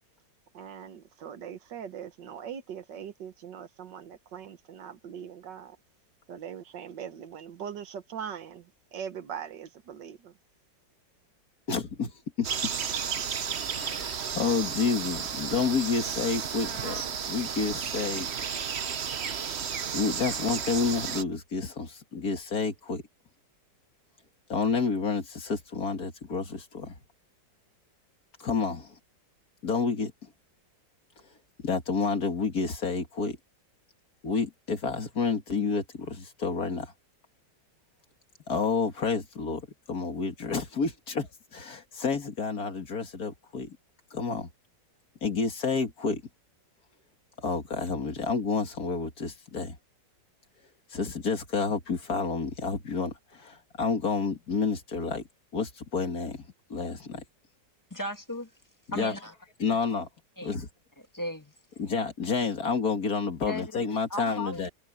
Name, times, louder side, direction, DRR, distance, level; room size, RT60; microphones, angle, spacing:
voice 1, 0.5-5.8 6.3-10.4, right 8 dB, 75° right, 1.8 m, -41 dB
voice 2, 11.7-12.5 13.7-18.3 19.5-23.0 24.5-27.0 28.4-29.0 29.6-30.3 31.2-33.4 34.2-36.9 38.5-43.8 44.1-44.5 45.2-46.2 47.4-49.8 50.9-55.3 55.5-57.2 58.9-59.1 59.6-60.1 60.4-60.7 61.8-64.7, left 5 dB, 55° left, 2.5 m, -30 dB
sound 1, 12.4-21.2, right 7 dB, 45° right, 0.9 m, -33 dB
voice 3, 57.9-58.5 58.9-59.3 60.4-60.5 61.1-61.5 63.4-64.7, left 1 dB, 10° left, 1.3 m, -36 dB
omnidirectional pair, 2.0 m